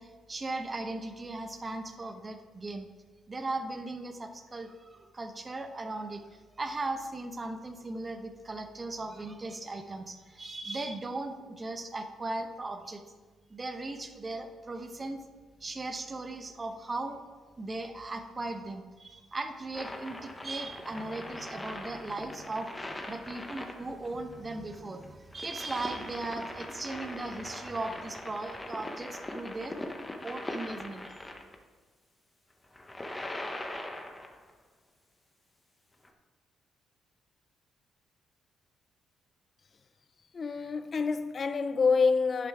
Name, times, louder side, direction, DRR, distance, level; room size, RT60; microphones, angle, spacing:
voice 1, 0.0-2.9 3.3-6.2 6.6-13.0 13.5-15.2 15.6-17.2 17.6-22.7 23.1-29.7 30.2-31.2, right 2 dB, 25° right, 0.9 m, -38 dB
sound 1, 19.7-31.6 32.6-34.5 36.0-36.1, left 1 dB, 15° left, 1.0 m, -41 dB
voice 2, 40.3-42.5, left 4 dB, 40° left, 0.4 m, -27 dB
11.0 x 6.5 x 3.5 m
cardioid pair, 90°, 0 cm